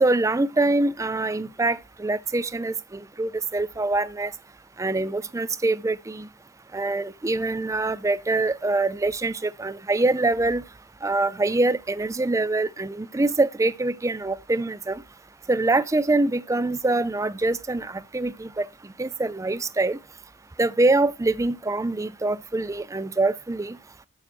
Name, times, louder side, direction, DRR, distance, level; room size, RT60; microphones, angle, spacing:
voice 1, 0.0-4.3 4.8-6.3 6.7-10.6 11.0-15.0 15.5-18.7 19.0-20.0 20.6-23.8, right 2 dB, 15° right, 0.4 m, -24 dB
7.6 x 7.2 x 4.3 m
head